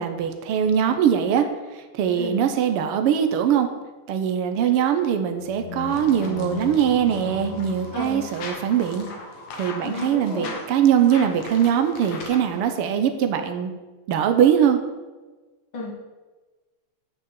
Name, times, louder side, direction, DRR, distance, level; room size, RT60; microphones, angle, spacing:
voice 1, 0.0-1.5 1.9-3.7 4.1-9.1 9.6-13.7 14.1-14.8, right 8 dB, 75° right, 7 dB, 1.3 m, -21 dB
sound 1, 5.4-8.4, left 6 dB, 75° left, 3.0 m, -36 dB
sound 2, 5.9-12.6, left 3 dB, 60° left, 2.4 m, -39 dB
voice 2, 7.9-8.2 9.8-10.5 15.7-15.9, left 2 dB, 45° left, -2 dB, 2.7 m, -32 dB
8.4 x 6.5 x 7.5 m, 1.3 s
omnidirectional pair, 3.5 m